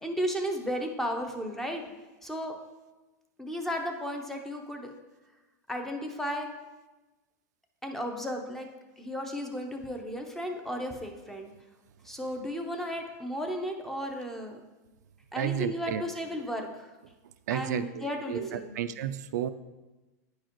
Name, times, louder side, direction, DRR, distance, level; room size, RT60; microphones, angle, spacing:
voice 1, 0.0-1.8 2.2-2.5 3.4-4.9 5.7-6.5 7.8-8.7 9.0-11.5 12.0-14.6 15.3-16.9 17.5-18.7, equal, 5° left, 3 dB, 0.6 m, -34 dB
voice 2, 15.4-16.0 17.5-19.5, right 10 dB, 85° right, 11 dB, 0.4 m, -32 dB
9.6 x 4.7 x 3.0 m, 1.1 s
supercardioid pair, 145°, 9 cm